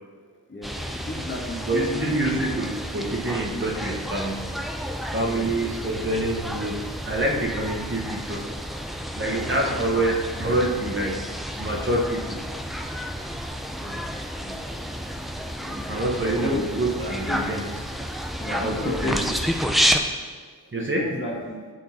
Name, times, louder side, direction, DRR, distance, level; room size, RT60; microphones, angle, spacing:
sound 1, 0.6-20.0, equal, ahead, 0.5 m, -30 dB
voice 1, 1.1-2.4 3.5-3.7 5.2-5.5 9.3-9.5 13.8-14.0 14.4-14.6 15.6-15.8 16.2-16.6 17.3-17.4 18.4-19.3 20.7-21.6, left 2 dB, 30° left, -3 dB, 1.9 m, -32 dB
voice 2, 1.7-8.5 9.1-11.2 11.6-12.4 15.9-17.9 18.5-19.2 20.7-21.1, right 1 dB, 30° right, -1 dB, 1.1 m, -27 dB
10.0 x 3.7 x 4.3 m, 1.5 s
cardioid pair, 65°, 38 cm